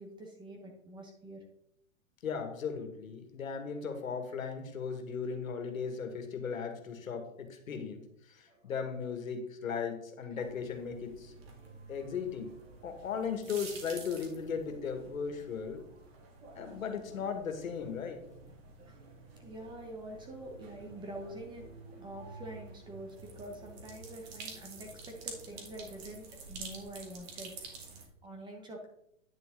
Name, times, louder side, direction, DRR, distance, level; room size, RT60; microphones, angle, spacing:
voice 1, 0.0-1.4 8.5-8.7 10.3-10.4 11.5-11.7 18.5-19.0 19.4-28.9, right 1 dB, 10° right, 2 dB, 1.3 m, -46 dB
voice 2, 2.2-11.3 11.9-12.6 12.8-15.8 16.6-18.2, left 6 dB, 80° left, 6 dB, 2.1 m, -37 dB
sound 1, 10.4-28.1, right 4 dB, 45° right, 2.5 m, -49 dB
10.0 x 6.6 x 3.9 m, 0.74 s
hypercardioid pair, 145°, 40 cm